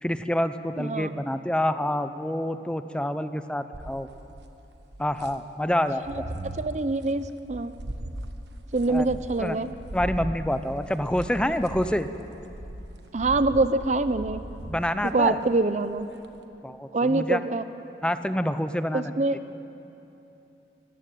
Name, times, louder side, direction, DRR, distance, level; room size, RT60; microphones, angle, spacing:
voice 1, 0.0-4.1 5.0-6.3 8.9-9.1 9.4-9.6 9.9-12.1 14.7-15.4 16.6-17.4 18.0-19.1, left 1 dB, 5° left, 10 dB, 0.6 m, -27 dB
voice 2, 0.8-1.1 6.1-6.2 6.5-7.7 8.7-9.7 13.1-14.4 15.0-16.1 16.9-17.6 18.9-19.4, right 3 dB, 40° right, 12 dB, 0.6 m, -25 dB
sound 1, 3.7-5.5 5.9-6.8 7.5-15.5 16.0-16.4, right 1 dB, 75° right, 1.3 m, -38 dB
24.0 x 14.5 x 9.2 m, 2.9 s
head